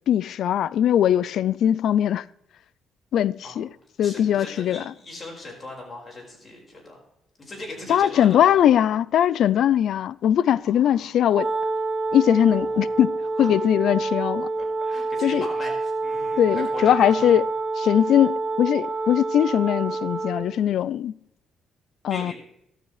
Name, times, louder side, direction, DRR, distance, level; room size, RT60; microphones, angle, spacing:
voice 1, 0.1-2.2 3.1-3.7 4.0-4.8 7.9-11.5 12.1-14.5 15.2-15.4 16.4-17.4 17.8-21.1 22.0-22.3, left 10 dB, 75° left, 0.3 m, -20 dB
voice 2, 4.0-7.0 7.4-8.5 10.6-11.2 12.5-13.1 13.4-13.5 14.6-17.3 18.0-18.1 22.1-22.3, left 2 dB, 40° left, 4.9 m, -39 dB
Wind instrument woodwind instrument, 11.3-20.5, right 3 dB, 35° right, 4.2 m, -27 dB
13.0 x 13.0 x 3.2 m
cardioid pair, 90°, 0 cm